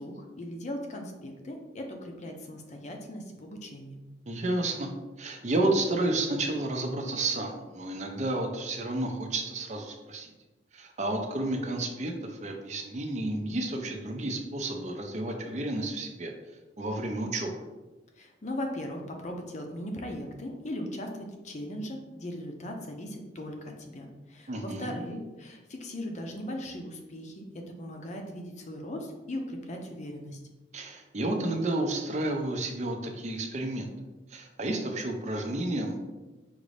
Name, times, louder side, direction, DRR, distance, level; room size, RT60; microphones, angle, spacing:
voice 1, 0.0-4.0 18.2-30.4, left 1 dB, 40° left, 3 dB, 0.5 m, -38 dB
voice 2, 4.3-4.9 5.2-10.3 10.7-16.3 16.8-17.6 24.5-24.9 30.7-33.9 34.3-36.0, right 2 dB, 40° right, 3 dB, 0.5 m, -31 dB
5.2 x 2.5 x 3.2 m, 1.1 s
head